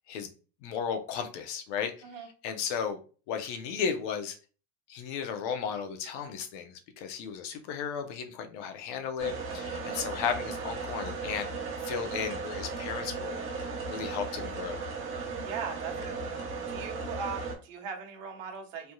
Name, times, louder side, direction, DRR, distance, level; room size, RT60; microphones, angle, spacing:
voice 1, 0.6-1.9 2.4-3.0 3.3-4.4 4.9-11.5 11.8-13.4 13.9-14.8, left 7 dB, 70° left, 6 dB, 0.8 m, -34 dB
sound 1, 9.2-17.6, right 4 dB, 35° right, 1.0 m, -36 dB
voice 2, 15.4-16.4 16.7-18.9, right 6 dB, 90° right, 4 dB, 1.0 m, -39 dB
3.4 x 2.7 x 2.3 m, 0.37 s
supercardioid pair, 135°, 37 cm